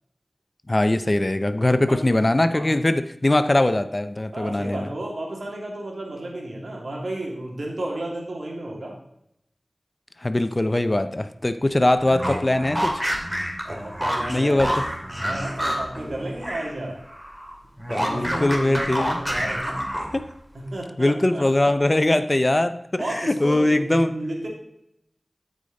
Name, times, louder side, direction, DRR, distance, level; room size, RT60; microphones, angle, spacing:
voice 1, 0.7-4.9 10.2-13.0 14.3-14.7 18.0-19.2 20.1-20.2 21.0-24.1, left 1 dB, 35° left, 10 dB, 0.6 m, -21 dB
voice 2, 1.7-2.0 2.5-2.6 4.3-9.0 13.6-14.8 15.0-17.0 17.9-19.8 20.5-21.7 23.0-24.5, right 1 dB, 75° right, -1 dB, 2.5 m, -32 dB
sound 1, 12.0-16.7 17.0-20.3, equal, 10° right, 2.3 m, -28 dB
12.5 x 5.1 x 4.0 m, 0.77 s
wide cardioid pair, 40°, 0 cm